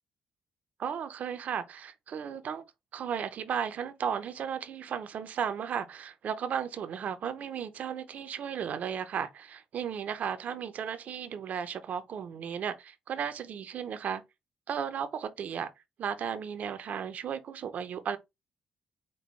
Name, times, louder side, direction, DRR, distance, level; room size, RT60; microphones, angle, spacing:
voice 1, 0.8-2.6 2.9-14.2 14.7-15.7 16.0-18.2, right 7 dB, 65° right, 0.6 m, -35 dB
5.3 x 2.2 x 3.2 m
supercardioid pair, 60°, 3 cm